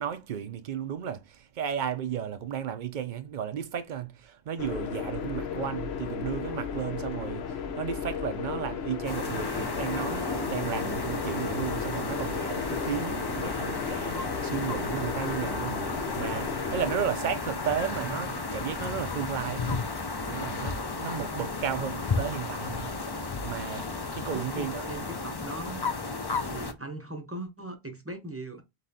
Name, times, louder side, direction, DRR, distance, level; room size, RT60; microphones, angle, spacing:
voice 1, 0.0-23.9 24.1-25.1, right 8 dB, 55° right, 0.7 m, -34 dB
sound 1, 4.6-17.0, left 6 dB, 80° left, 1.0 m, -35 dB
sound 2, 9.0-26.7, left 3 dB, 30° left, 0.5 m, -33 dB
voice 2, 17.9-18.4 21.7-21.9 24.3-25.8 26.4-28.6, right 2 dB, 15° right, 0.7 m, -39 dB
5.4 x 3.0 x 2.7 m
omnidirectional pair, 1.1 m